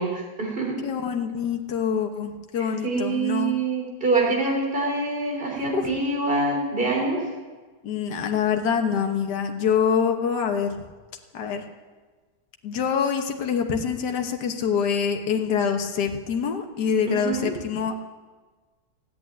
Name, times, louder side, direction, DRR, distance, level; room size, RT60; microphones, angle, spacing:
voice 1, 0.0-0.8 2.6-7.2 17.1-17.5, right 3 dB, 30° right, 0 dB, 3.3 m, -25 dB
voice 2, 0.8-3.5 5.7-5.9 7.8-10.8 11.3-11.6 12.6-18.0, left 7 dB, 70° left, 4 dB, 1.7 m, -25 dB
16.0 x 8.6 x 9.2 m, 1.4 s
omnidirectional pair, 1.9 m